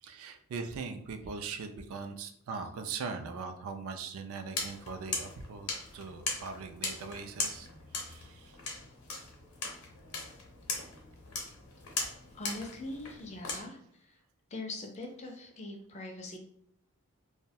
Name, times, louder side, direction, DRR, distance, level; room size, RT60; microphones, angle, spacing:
voice 1, 0.0-7.7 7.9-8.6, right 4 dB, 70° right, 7 dB, 0.3 m, -40 dB
sound 1, 4.5-13.6, left 4 dB, 80° left, 0.7 m, -39 dB
voice 2, 12.3-14.2 14.5-16.4, left 2 dB, 30° left, 2 dB, 0.4 m, -42 dB
2.2 x 2.1 x 2.6 m, 0.71 s
head